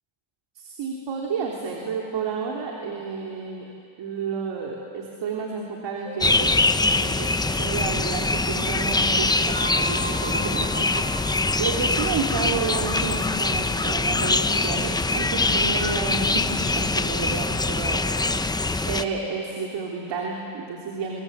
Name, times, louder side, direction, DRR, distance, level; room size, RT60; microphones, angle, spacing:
voice 1, 0.5-3.7 4.0-6.5 6.9-18.0 18.8-21.2, right 5 dB, 60° right, -1 dB, 3.3 m, -31 dB
sound 1, 6.0-8.3 9.6-13.8, equal, 20° right, 1.9 m, -39 dB
sound 2, 6.2-19.0, left 3 dB, 10° left, 0.6 m, -23 dB
28.5 x 23.5 x 8.2 m, 2.6 s
cardioid pair, 120°, 49 cm